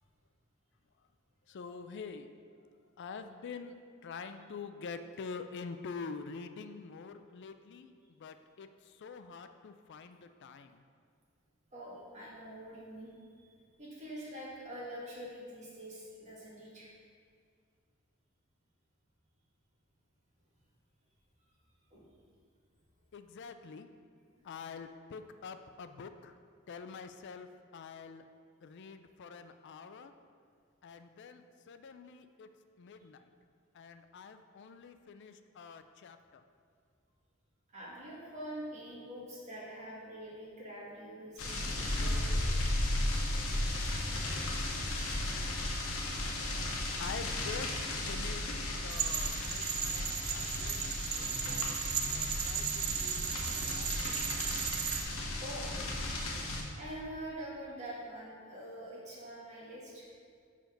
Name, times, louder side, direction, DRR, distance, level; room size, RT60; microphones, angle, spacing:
voice 1, 1.5-2.3 3.0-10.8 23.1-23.9 24.4-26.3 26.7-28.2 28.6-30.1 30.8-32.5 32.8-33.2 33.7-36.4 47.0-51.8 52.1-53.3 53.7-54.6, left 5 dB, 55° left, 9 dB, 0.4 m, -46 dB
voice 2, 11.7-13.1 13.4-16.9 21.9-22.0 37.7-42.2 55.4-55.7 56.8-60.1, right 1 dB, 35° right, -6 dB, 1.8 m, -45 dB
sound 1, 41.4-56.6, left 1 dB, 85° left, 1.0 m, -35 dB
sound 2, 48.9-55.0, right 9 dB, 80° right, 0.5 m, -36 dB
5.8 x 4.9 x 5.1 m, 2.1 s
head